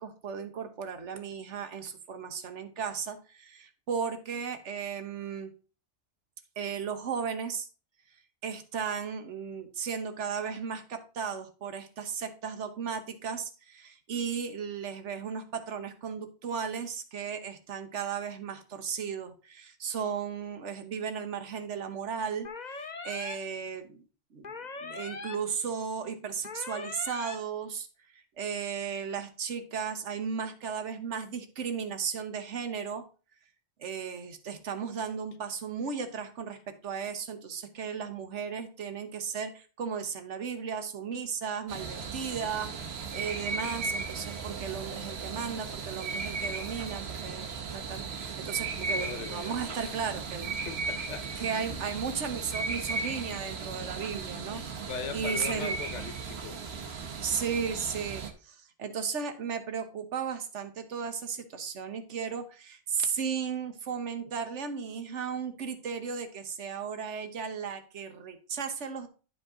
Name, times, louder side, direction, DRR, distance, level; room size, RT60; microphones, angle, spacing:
voice 1, 0.0-5.5 6.6-7.7 8.4-24.0 24.3-24.5 24.8-27.9 28.1-33.0 33.8-50.5 51.4-54.6 55.1-55.8 57.2-69.1, right 6 dB, 80° right, 1.3 m, -35 dB
sound 1, 22.4-23.3 24.4-25.3 26.4-27.3, left 4 dB, 40° left, 1.0 m, -40 dB
sound 2, 41.7-58.3, right 4 dB, 60° right, 1.3 m, -36 dB
voice 2, 48.8-49.5 50.7-51.9 54.3-56.6, left 6 dB, 80° left, 1.2 m, -40 dB
10.5 x 5.2 x 3.6 m
omnidirectional pair, 1.2 m